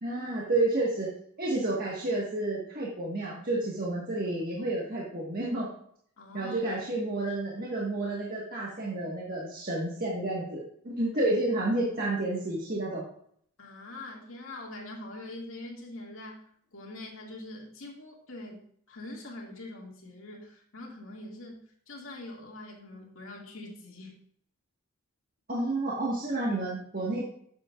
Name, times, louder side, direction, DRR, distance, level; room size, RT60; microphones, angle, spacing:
voice 1, 0.0-1.1 1.4-5.7 6.3-13.0 25.5-27.3, right 2 dB, 45° right, -5 dB, 1.6 m, -30 dB
voice 2, 6.2-6.7 13.6-16.4 16.7-18.6 18.9-24.2 27.0-27.1, left 2 dB, 75° left, -1 dB, 2.3 m, -43 dB
11.0 x 7.4 x 2.5 m, 0.64 s
head